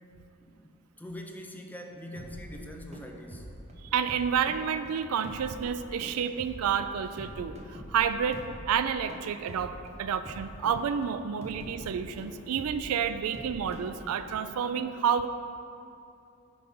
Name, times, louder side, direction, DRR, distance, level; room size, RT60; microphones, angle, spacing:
voice 1, 0.4-3.5, left 1 dB, 10° left, 2 dB, 0.6 m, -43 dB
sound 1, 2.2-14.5, equal, 30° right, 0.9 m, -45 dB
voice 2, 3.9-9.7 10.0-15.3, right 7 dB, 75° right, 11 dB, 0.3 m, -29 dB
9.8 x 3.8 x 5.4 m, 2.7 s
head